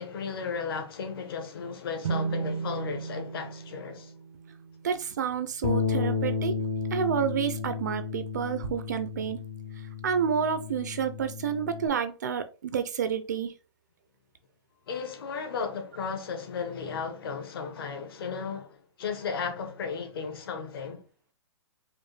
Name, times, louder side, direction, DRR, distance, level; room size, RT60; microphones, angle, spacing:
voice 1, 0.0-4.1 14.9-21.0, left 5 dB, 50° left, 0.9 m, -35 dB
sound 1, 2.0-5.6, right 5 dB, 90° right, 0.6 m, -35 dB
voice 2, 4.8-6.6 6.9-9.4 10.0-13.5, right 7 dB, 35° right, 0.4 m, -29 dB
Bass guitar, 5.6-11.9, left 5 dB, 25° left, 0.6 m, -32 dB
4.9 x 2.1 x 3.2 m
hypercardioid pair, 175°, 15 cm